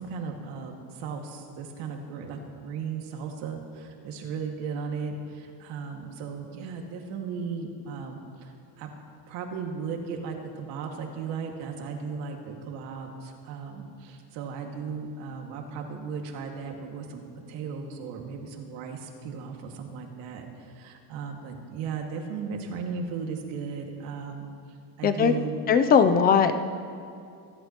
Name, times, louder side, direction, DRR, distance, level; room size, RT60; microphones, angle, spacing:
voice 1, 0.0-8.9 9.3-24.5 25.0-25.6, right 5 dB, 85° right, 2 dB, 2.0 m, -36 dB
voice 2, 25.0-25.3 25.7-26.6, left 6 dB, 25° left, 9 dB, 0.4 m, -19 dB
25.5 x 11.5 x 2.9 m, 2.5 s
cardioid pair, 165°, 44 cm